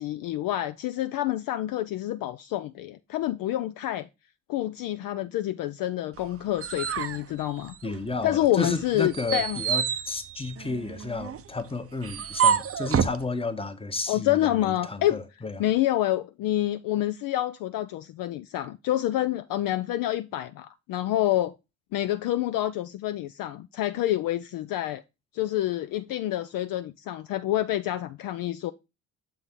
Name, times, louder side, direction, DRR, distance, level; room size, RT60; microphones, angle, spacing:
voice 1, 0.0-4.1 4.5-7.7 8.2-9.6 14.1-15.2 15.6-21.5 21.9-25.0 25.3-28.7, left 14 dB, 50° left, 0.5 m, -27 dB
sound 1, 6.2-8.2 8.6-13.2, right 7 dB, 30° right, 0.6 m, -28 dB
voice 2, 7.8-15.6, left 3 dB, 15° left, 1.0 m, -32 dB
6.8 x 4.1 x 3.7 m
hypercardioid pair, 50°, 43 cm